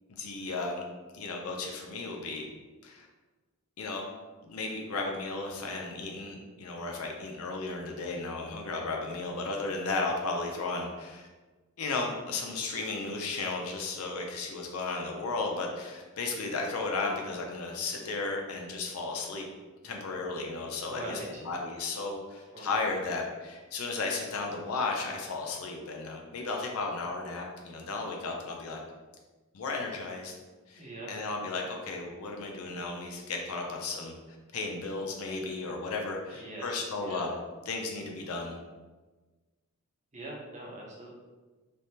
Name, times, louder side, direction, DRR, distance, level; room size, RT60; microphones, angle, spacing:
voice 1, 0.1-0.8 1.1-2.5 2.8-3.1 3.8-4.0 4.4-11.3 11.8-19.5 19.8-28.8 29.5-30.3 30.7-34.2 34.5-37.4 37.7-38.6, left 3 dB, 80° left, 1 dB, 0.5 m, -34 dB
voice 2, 20.9-21.4 22.5-22.9 30.7-31.1 36.3-37.2 40.1-41.1, right 1 dB, 35° right, -3 dB, 0.6 m, -42 dB
3.3 x 2.1 x 2.7 m, 1.3 s
head